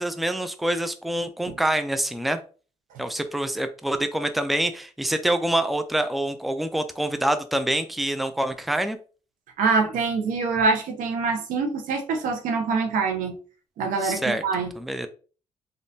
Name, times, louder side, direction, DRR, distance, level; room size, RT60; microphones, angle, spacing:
voice 1, 0.0-2.4 3.0-9.0 14.0-14.4 14.8-15.1, right 1 dB, ahead, 8 dB, 0.4 m, -26 dB
voice 2, 9.6-13.3 13.8-14.7, right 4 dB, 90° right, 4 dB, 0.7 m, -25 dB
3.4 x 2.4 x 2.6 m, 0.37 s
cardioid pair, 65°, 13 cm